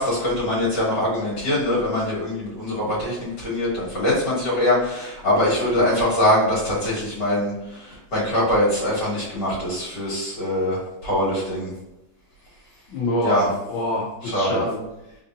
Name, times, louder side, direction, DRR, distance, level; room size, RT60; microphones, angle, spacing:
voice 1, 0.0-11.7 13.2-13.5 14.3-14.6, left 1 dB, 60° left, -7 dB, 2.2 m, -23 dB
voice 2, 12.9-14.8 15.1-15.2, left 1 dB, 80° left, -4 dB, 1.4 m, -26 dB
4.0 x 3.5 x 2.6 m, 0.94 s
omnidirectional pair, 2.2 m